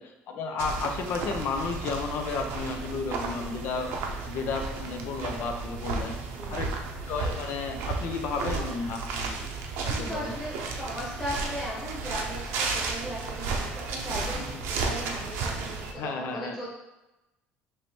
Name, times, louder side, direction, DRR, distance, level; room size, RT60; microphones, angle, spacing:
voice 1, 0.0-3.9 4.3-6.2 6.5-6.7 7.1-9.5 9.8-10.3 14.3-14.6 16.0-16.6, left 4 dB, 60° left, 5 dB, 0.6 m, -33 dB
sound 1, 0.6-15.9, right 4 dB, 75° right, 0.6 m, -33 dB
voice 2, 6.3-6.8 8.4-8.7 9.9-16.7, equal, ahead, -8 dB, 1.3 m, -37 dB
3.1 x 3.0 x 4.3 m, 0.97 s
cardioid pair, 135°, 4 cm